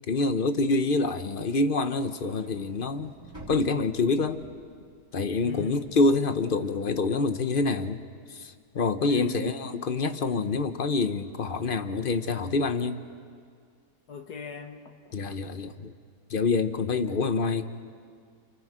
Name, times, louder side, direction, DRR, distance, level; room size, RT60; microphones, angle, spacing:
voice 1, 0.1-3.1 3.5-4.4 5.1-8.0 8.3-13.0 15.1-15.9 16.3-17.6, left 3 dB, 45° left, 10 dB, 0.8 m, -26 dB
sound 1, 2.0-8.2, right 1 dB, 10° right, 4.0 m, -52 dB
voice 2, 5.4-6.0 9.0-9.6 14.1-15.1 17.0-17.1, left 3 dB, 75° left, 5 dB, 2.0 m, -39 dB
29.5 x 29.0 x 5.0 m, 2.1 s
omnidirectional pair, 1.7 m